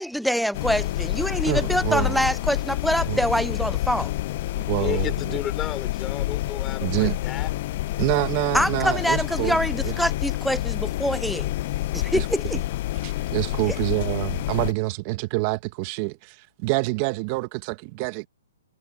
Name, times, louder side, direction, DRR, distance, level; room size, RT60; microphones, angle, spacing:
voice 1, 0.0-4.1 8.5-11.5 11.9-12.6, equal, ahead, 0.6 m, -25 dB
sound 1, 0.5-14.7, left 16 dB, 40° left, 0.4 m, -28 dB
voice 2, 1.5-2.2 3.1-3.2 4.5-5.4 6.8-7.2 8.0-9.6 9.8-9.9 12.1-12.2 13.0-18.3, right 23 dB, 30° right, 1.7 m, -27 dB
voice 3, 4.8-7.5, left 10 dB, 15° left, 4.7 m, -33 dB
hypercardioid pair, 155°, 0 cm